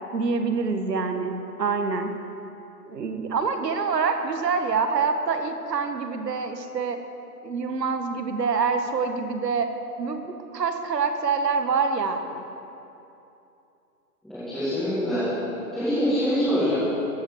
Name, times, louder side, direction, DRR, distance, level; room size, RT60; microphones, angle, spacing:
voice 1, 0.1-2.1 2.9-7.0 7.4-9.7 10.0-12.4, right 5 dB, 85° right, 6 dB, 1.6 m, -26 dB
voice 2, 14.2-15.3 15.7-16.7, equal, ahead, -17 dB, 1.5 m, -24 dB
14.5 x 10.0 x 6.4 m, 2.8 s
hypercardioid pair, 175°, 48 cm